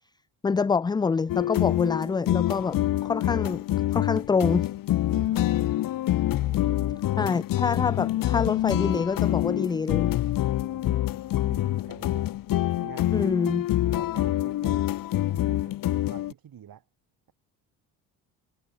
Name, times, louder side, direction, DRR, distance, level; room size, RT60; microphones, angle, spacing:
voice 1, 0.4-3.6 3.9-4.7 7.2-10.1 13.1-13.7, left 5 dB, 10° left, 0.3 m, -26 dB
sound 1, 1.3-16.3, left 14 dB, 50° left, 0.8 m, -26 dB
voice 2, 5.1-5.6 6.3-7.0 10.6-11.2 11.4-12.3 12.8-13.3 13.8-14.9 15.3-16.8, right 9 dB, 55° right, 6.4 m, -46 dB
supercardioid pair, 65°, 43 cm